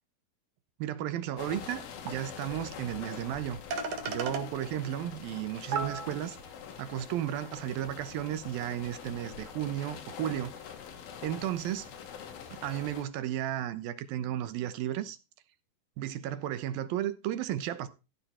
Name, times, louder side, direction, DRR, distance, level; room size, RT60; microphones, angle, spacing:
voice 1, 0.8-3.6 4.1-6.4 6.8-10.5 11.2-11.9 12.5-15.2 16.0-17.9, right 12 dB, 80° right, 2.8 m, -34 dB
sound 1, 1.4-13.0, left 7 dB, 85° left, 3.7 m, -45 dB
sound 2, 1.6-1.7 2.1-2.2 3.3-3.4 3.7-4.4 5.3-5.4 5.7-6.4, right 4 dB, 55° right, 2.5 m, -33 dB
14.5 x 7.3 x 4.3 m
omnidirectional pair, 4.1 m